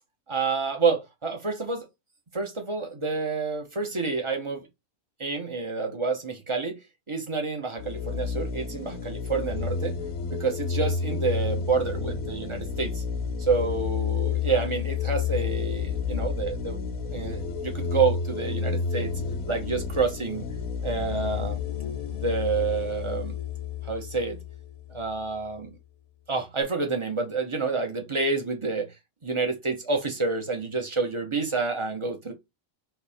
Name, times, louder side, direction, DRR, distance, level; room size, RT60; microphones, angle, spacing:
voice 1, 0.3-1.9 2.3-4.7 5.2-6.8 7.1-9.9 10.3-13.0 13.4-19.1 19.5-20.5 20.8-21.6 22.1-23.4 23.8-24.4 24.9-25.8 26.3-28.9 29.2-32.3, right 4 dB, 25° right, 0.8 m, -28 dB
sound 1, 7.8-25.2, left 6 dB, 80° left, 1.1 m, -31 dB
3.5 x 3.1 x 4.3 m
omnidirectional pair, 1.4 m